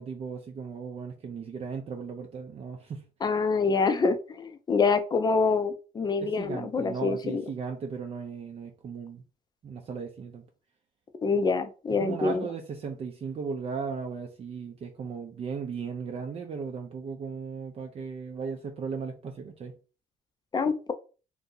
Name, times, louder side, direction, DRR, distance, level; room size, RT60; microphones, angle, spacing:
voice 1, 0.0-3.1 6.2-9.2 9.6-10.4 11.9-19.7, right 5 dB, 40° right, 0.5 m, -36 dB
voice 2, 3.2-7.4 11.2-12.5 20.5-20.9, left 4 dB, 25° left, 0.5 m, -26 dB
2.7 x 2.6 x 3.8 m
cardioid pair, 100°, 16 cm